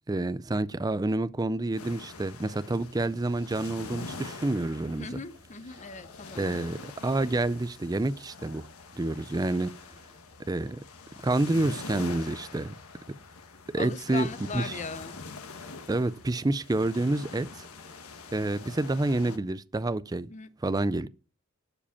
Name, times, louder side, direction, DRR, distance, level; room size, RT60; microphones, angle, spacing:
voice 1, 0.1-5.2 6.4-8.7 8.9-9.7 10.5-10.8 11.2-12.7 13.7-14.3 14.5-14.7 15.9-17.7 18.3-20.3 20.6-21.1, right 2 dB, 15° right, 0.4 m, -28 dB
sound 1, 1.8-19.4, left 4 dB, 85° left, 1.3 m, -45 dB
voice 2, 5.0-6.7 13.8-15.2 20.3-20.5, left 4 dB, 35° left, 0.7 m, -39 dB
11.5 x 5.0 x 7.1 m
head